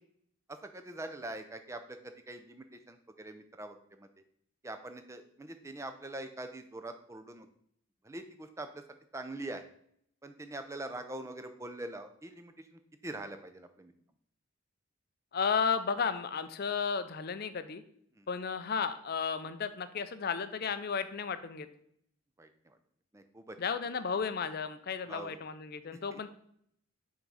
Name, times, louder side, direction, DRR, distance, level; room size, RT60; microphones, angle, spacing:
voice 1, 0.5-4.1 4.6-7.5 8.0-8.8 9.1-9.6 10.2-13.9 18.2-18.3 22.4-22.8 23.1-23.6 25.0-25.4 26.1-26.2, right 2 dB, 15° right, 8 dB, 0.4 m, -43 dB
voice 2, 15.3-17.8 18.3-21.7 23.6-26.3, left 6 dB, 45° left, 11 dB, 0.4 m, -33 dB
5.8 x 3.7 x 5.5 m, 0.67 s
head